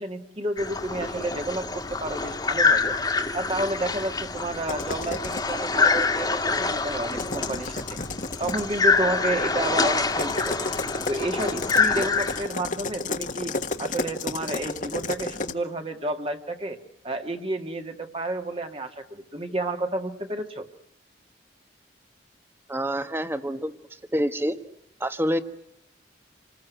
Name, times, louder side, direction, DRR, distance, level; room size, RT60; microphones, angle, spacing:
voice 1, 0.0-3.0 3.3-8.0 8.4-10.7 11.1-16.8 17.0-20.7, right 1 dB, 30° right, 5 dB, 1.9 m, -31 dB
sound 1, 0.6-12.4, left 4 dB, 20° left, 1.9 m, -26 dB
sound 2, 4.7-5.5 7.0-8.8 10.1-15.5, left 3 dB, 45° left, 1.5 m, -32 dB
voice 2, 22.7-24.6 25.0-25.4, equal, 10° right, 10 dB, 1.3 m, -27 dB
28.0 x 20.5 x 9.4 m, 0.79 s
head